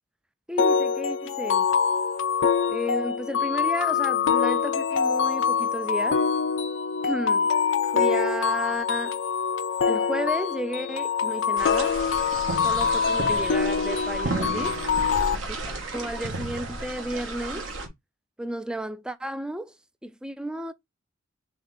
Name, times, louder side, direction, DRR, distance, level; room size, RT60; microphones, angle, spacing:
voice 1, 0.5-1.7 2.7-6.2 7.0-7.5 7.8-9.2 9.9-11.9 12.6-14.8 15.9-17.6 18.4-19.7 20.0-20.7, right 1 dB, 5° right, 0.3 m, -32 dB
sound 1, 0.6-15.4, left 6 dB, 65° left, 0.4 m, -24 dB
sound 2, 11.6-17.9, right 2 dB, 75° right, 1.2 m, -33 dB
3.7 x 3.4 x 3.9 m
head